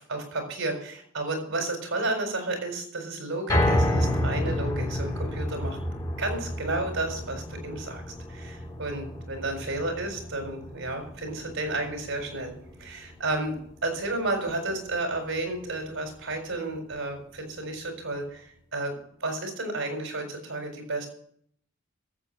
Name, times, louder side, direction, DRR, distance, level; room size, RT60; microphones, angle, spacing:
voice 1, 0.0-5.8 6.2-8.0 8.3-12.5 12.8-13.6 13.8-18.4 18.7-18.9 19.2-21.1, right 2 dB, 80° right, 4 dB, 4.5 m, -32 dB
sound 1, 3.5-15.7 16.1-16.2 16.7-16.8, left 1 dB, 20° left, 6.8 m, -31 dB
12.5 x 7.8 x 7.2 m, 0.67 s
head